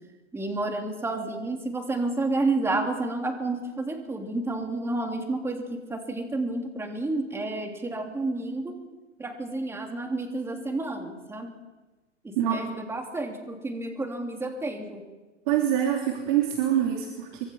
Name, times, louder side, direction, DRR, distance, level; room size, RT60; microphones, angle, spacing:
voice 1, 0.3-8.7 9.2-11.5 12.2-15.0, right 2 dB, 5° right, 3 dB, 3.3 m, -30 dB
voice 2, 15.5-17.4, right 10 dB, 40° right, 1 dB, 3.7 m, -25 dB
25.0 x 24.5 x 5.9 m, 1.2 s
hypercardioid pair, 135°, 36 cm